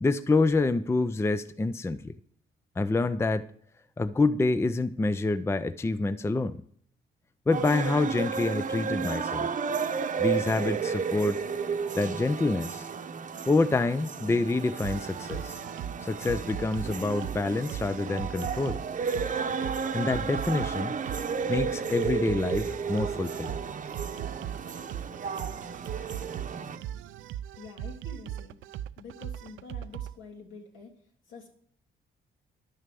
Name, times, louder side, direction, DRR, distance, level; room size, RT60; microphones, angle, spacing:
voice 1, 0.0-2.2 2.8-3.5 4.0-6.6 7.5-9.5 10.2-11.4 12.0-12.9 13.5-15.6 16.0-18.8 19.9-20.9 21.5-23.6, left 3 dB, 15° left, 0.5 m, -27 dB
sound 1, 7.5-26.8, right 6 dB, 40° right, 0.9 m, -33 dB
sound 2, 14.8-30.1, right 11 dB, 80° right, 0.5 m, -39 dB
voice 2, 27.6-28.6 29.0-31.5, left 4 dB, 75° left, 3.1 m, -47 dB
11.0 x 6.4 x 6.8 m
cardioid pair, 90°, 20 cm